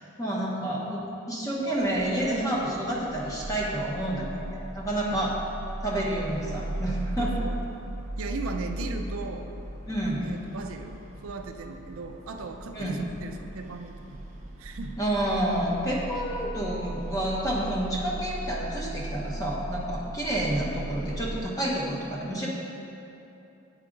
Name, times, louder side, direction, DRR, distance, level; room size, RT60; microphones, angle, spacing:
voice 1, 0.2-1.0 1.3-5.3 5.8-7.3 9.9-10.3 12.7-13.0 15.0-22.5, right 1 dB, 15° left, -5 dB, 1.0 m, -29 dB
sound 1, 1.7-21.4, right 1 dB, 30° right, 0.8 m, -37 dB
voice 2, 7.2-7.6 8.2-9.5 10.2-14.2 14.6-15.0, right 3 dB, 75° right, 5 dB, 0.4 m, -37 dB
8.4 x 4.9 x 3.8 m, 2.9 s
head